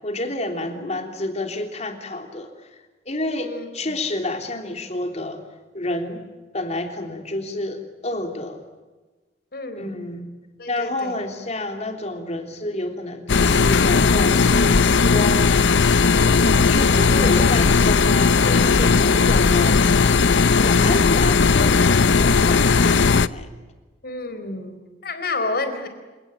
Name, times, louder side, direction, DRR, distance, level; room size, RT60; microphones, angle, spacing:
voice 1, 0.0-2.8 3.0-5.4 5.7-6.2 6.5-8.6 9.8-10.3 10.7-15.5 15.9-19.8 20.6-23.5 24.3-24.6, left 1 dB, 35° left, 5 dB, 3.3 m, -29 dB
voice 2, 3.4-4.0 9.5-10.0 10.6-11.1 24.0-25.9, left 3 dB, 55° left, 8 dB, 4.2 m, -30 dB
sound 1, 13.3-23.3, left 4 dB, 85° left, 0.7 m, -17 dB
29.0 x 18.0 x 9.0 m, 1.3 s
head